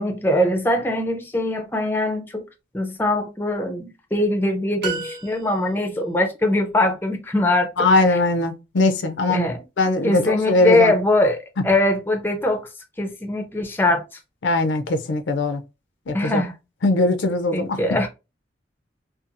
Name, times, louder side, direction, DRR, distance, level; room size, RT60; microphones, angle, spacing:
voice 1, 0.0-2.4 2.7-7.7 9.3-9.6 10.0-11.4 11.6-12.7 13.0-14.0 16.1-16.5 17.5-18.1, left 1 dB, 10° left, 0.4 m, -21 dB
sound 1, 4.8-5.9, right 3 dB, 60° right, 0.7 m, -31 dB
voice 2, 7.8-9.5 9.8-10.9 11.6-11.7 14.4-15.6 16.1-16.4 16.8-17.8, left 2 dB, 85° left, 0.5 m, -20 dB
2.7 x 2.3 x 2.5 m
head